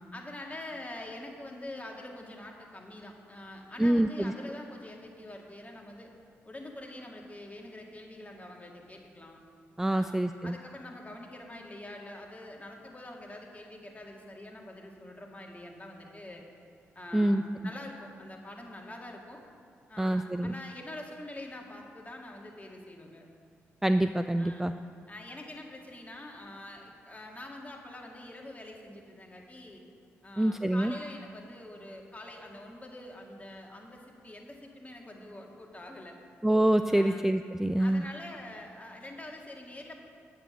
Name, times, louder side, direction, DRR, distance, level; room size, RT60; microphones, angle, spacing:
voice 1, 0.1-6.1 6.4-9.4 9.9-16.4 17.0-19.4 19.9-23.3 24.4-24.7 25.1-29.8 30.2-36.2 36.9-37.3 37.8-40.0, left 1 dB, 25° left, 0 dB, 2.1 m, -45 dB
voice 2, 3.8-4.3 9.8-10.6 17.1-17.4 20.0-20.5 23.8-24.7 30.4-30.9 36.4-38.0, right 1 dB, 5° right, 10 dB, 0.3 m, -26 dB
8.0 x 7.8 x 6.3 m, 2.3 s
hypercardioid pair, 40°, 6 cm